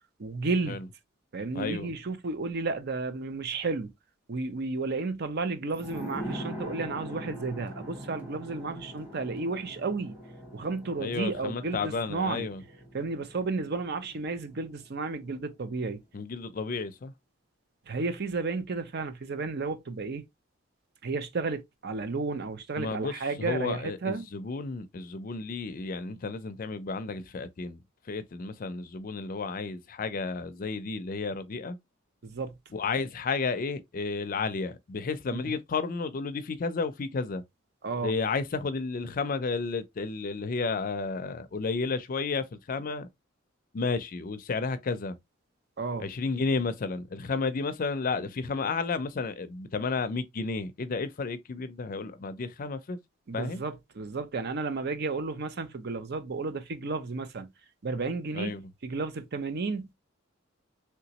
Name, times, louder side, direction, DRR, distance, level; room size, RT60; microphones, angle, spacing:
voice 1, 0.2-0.8 1.3-3.9 4.3-10.1 10.5-12.5 12.9-16.0 17.9-20.2 21.0-24.3 32.2-32.5 35.3-35.4 37.8-38.1 45.8-46.1 53.3-57.5 57.8-58.5 58.8-59.9, right 3 dB, 55° right, 0.6 m, -32 dB
voice 2, 1.5-1.9 11.0-12.6 16.1-17.1 22.8-27.8 28.1-31.8 32.7-37.4 38.0-43.1 43.7-45.2 46.0-53.0 53.3-53.6 58.3-58.7, left 4 dB, 45° left, 0.4 m, -32 dB
sound 1, 5.7-15.0 15.3-15.4, equal, 10° right, 1.1 m, -42 dB
3.3 x 2.9 x 2.8 m
head